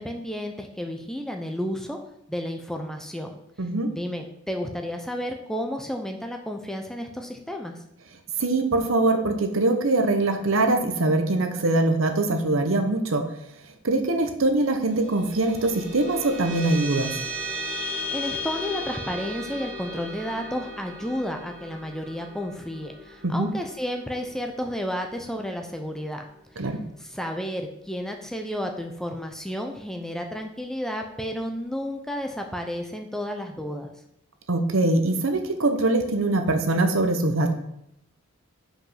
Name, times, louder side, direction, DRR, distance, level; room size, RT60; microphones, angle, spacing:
voice 1, 0.0-2.0 2.3-3.3 3.9-7.8 17.8-26.3 27.0-33.9, equal, ahead, 4 dB, 0.5 m, -32 dB
voice 2, 3.6-3.9 8.4-13.2 13.8-17.1 23.2-23.5 26.6-26.8 34.5-37.5, right 2 dB, 75° right, 6 dB, 0.9 m, -23 dB
sound 1, 14.7-25.5, left 1 dB, 35° right, 2.5 m, -36 dB
5.2 x 5.2 x 5.6 m, 0.79 s
head